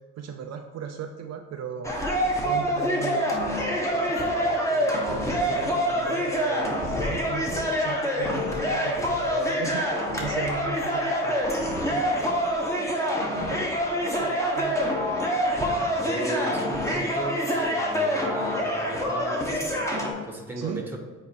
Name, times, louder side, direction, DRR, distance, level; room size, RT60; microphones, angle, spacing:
voice 1, 0.2-2.0 2.4-13.7 14.0-14.9 20.6-20.8, right 6 dB, 60° right, 5 dB, 0.5 m, -37 dB
sound 1, 1.8-20.1, equal, 10° left, 1.4 m, -26 dB
voice 2, 15.5-21.0, right 1 dB, 5° right, 1 dB, 1.3 m, -36 dB
8.4 x 2.8 x 4.5 m, 1.4 s
cardioid pair, 90°, 30 cm